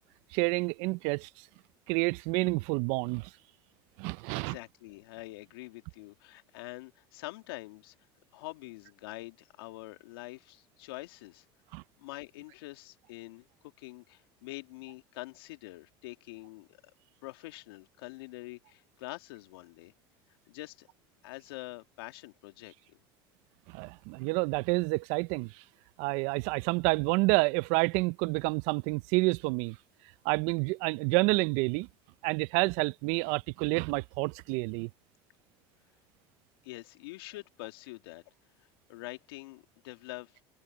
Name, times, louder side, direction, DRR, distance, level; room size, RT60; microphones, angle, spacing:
voice 1, 0.3-1.3 1.9-3.3 4.0-4.5 11.7-11.8 23.7-25.5 26.0-29.8 30.2-31.9 32.2-34.9, right 27 dB, 65° right, 0.7 m, -29 dB
voice 2, 4.3-7.9 8.3-11.5 12.0-13.5 13.8-16.8 17.2-19.9 20.4-20.9 21.2-23.0 36.6-38.2 38.6-40.4, left 21 dB, 80° left, 2.6 m, -45 dB
hypercardioid pair, 85°, 12 cm